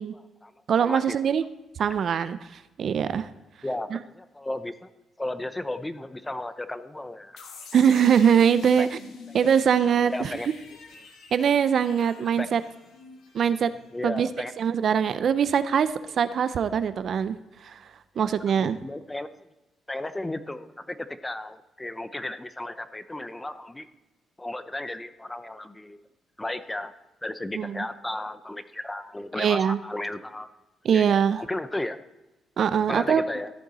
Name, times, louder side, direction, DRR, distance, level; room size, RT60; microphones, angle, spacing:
voice 1, 0.0-0.5 0.8-1.2 3.6-4.9 5.2-7.4 8.8-8.9 10.1-10.5 12.4-12.5 13.9-14.5 18.2-18.3 18.6-19.5 19.9-23.9 24.4-26.0 26.4-26.9 27.2-30.5 30.9-32.0 32.9-33.5, left 1 dB, 15° left, 12 dB, 0.6 m, -34 dB
voice 2, 0.7-1.4 1.8-2.4 2.8-3.3 3.9-4.0 7.7-9.0 9.3-10.3 11.3-12.6 13.3-13.7 14.0-14.3 14.6-17.8 18.2-18.8 27.5-27.9 29.4-29.8 30.8-31.4 32.6-33.2, right 8 dB, 60° right, 13 dB, 0.5 m, -22 dB
sound 1, 7.4-14.2, left 4 dB, 75° left, 1.8 m, -47 dB
14.0 x 6.6 x 4.1 m, 1.0 s
cardioid pair, 90°, 0 cm